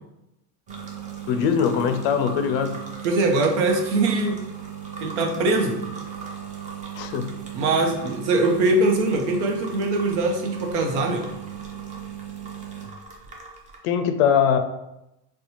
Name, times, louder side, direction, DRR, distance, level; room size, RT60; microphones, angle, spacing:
sound 1, 0.7-13.8, right 7 dB, 20° right, 0.6 m, -36 dB
voice 1, 1.3-2.8 7.0-7.3 13.8-14.6, left 7 dB, 65° left, 9 dB, 0.4 m, -21 dB
voice 2, 3.0-4.4 5.0-5.8 7.5-11.3, right 2 dB, 85° right, 2 dB, 0.8 m, -22 dB
4.1 x 2.2 x 2.9 m, 0.91 s
supercardioid pair, 135°, 34 cm